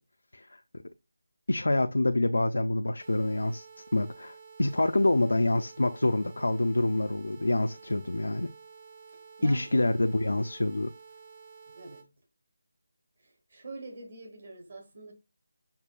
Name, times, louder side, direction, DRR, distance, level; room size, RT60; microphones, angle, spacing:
voice 1, 1.5-3.7 3.9-8.5 9.4-10.9, left 2 dB, 90° left, 0.4 m, -26 dB
sound 1, 3.0-12.0, right 5 dB, 30° right, 0.6 m, -51 dB
voice 2, 9.1-9.9 11.7-12.1 13.2-15.1, right 3 dB, 50° right, 1.1 m, -46 dB
6.7 x 2.3 x 2.2 m
figure-of-eight pair, 165°, 0 cm